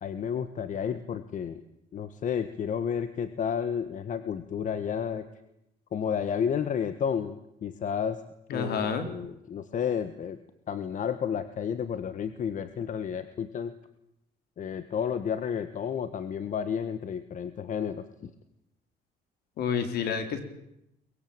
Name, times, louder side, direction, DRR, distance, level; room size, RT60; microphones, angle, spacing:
voice 1, 0.0-1.6 1.9-5.3 5.9-8.2 8.5-10.4 10.7-13.7 14.6-18.3, left 7 dB, 50° left, 12 dB, 1.6 m, -31 dB
voice 2, 8.5-9.0 19.6-20.4, left 6 dB, 70° left, 8 dB, 4.0 m, -29 dB
23.0 x 21.5 x 9.0 m, 0.82 s
cardioid pair, 110°, 17 cm